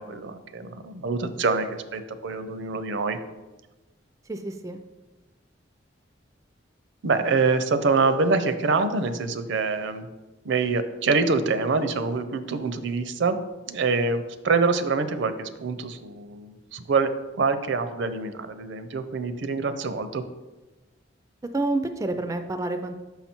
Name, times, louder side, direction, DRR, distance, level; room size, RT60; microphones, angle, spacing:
voice 1, 0.0-3.2 7.0-10.1 10.4-13.4 13.7-17.1 17.4-20.2, right 4 dB, 70° right, 11 dB, 0.5 m, -25 dB
voice 2, 4.3-4.8 21.5-23.0, right 2 dB, 15° right, 8 dB, 0.3 m, -28 dB
5.8 x 5.7 x 4.4 m, 1.1 s
head